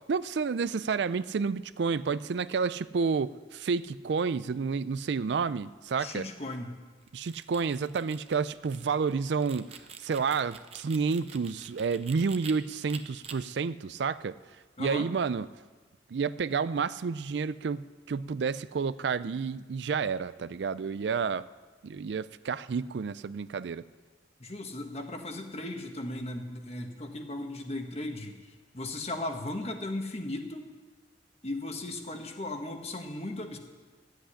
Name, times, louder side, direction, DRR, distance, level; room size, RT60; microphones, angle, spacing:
voice 1, 0.0-6.3 7.1-9.7 10.0-14.4 14.8-15.5 16.1-21.5 21.8-23.8, right 5 dB, 70° right, 16 dB, 0.4 m, -30 dB
voice 2, 6.0-6.7 14.8-15.1 24.4-28.4 28.7-30.7 31.4-33.6, left 2 dB, 35° left, 4 dB, 1.4 m, -36 dB
sound 1, 7.0-12.5 12.9-13.3, right 6 dB, 35° right, 0.9 m, -47 dB
14.0 x 8.1 x 10.0 m, 1.4 s
head